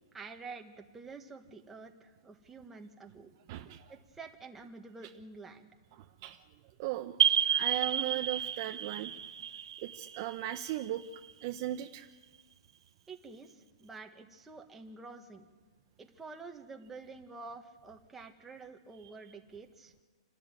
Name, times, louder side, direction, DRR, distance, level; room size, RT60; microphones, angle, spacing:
voice 1, 0.1-3.3 3.9-5.7 13.1-15.5 16.0-19.9, right 4 dB, 10° right, 3 dB, 1.6 m, -48 dB
voice 2, 3.5-3.9 5.9-6.4 6.8-9.1 9.8-11.0 11.4-12.1 19.0-19.1, right 14 dB, 40° right, 7 dB, 0.9 m, -37 dB
sound 1, 7.2-11.6, right 9 dB, 85° right, 2.0 m, -31 dB
27.5 x 13.0 x 9.0 m, 1.3 s
hypercardioid pair, 155°, 3 cm